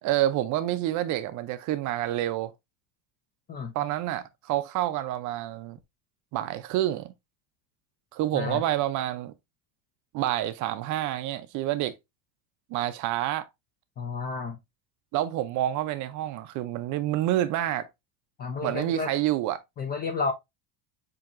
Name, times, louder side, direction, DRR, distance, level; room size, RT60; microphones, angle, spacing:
voice 1, 0.0-2.5 3.7-5.8 6.3-7.1 8.1-9.3 10.1-12.0 12.7-13.5 15.1-17.9 18.6-19.6, right 13 dB, 40° right, 0.5 m, -28 dB
voice 2, 8.3-8.6 14.0-14.6 18.4-19.1 19.8-20.3, left 4 dB, 25° left, 0.3 m, -31 dB
7.3 x 2.9 x 2.5 m
supercardioid pair, 135°, 47 cm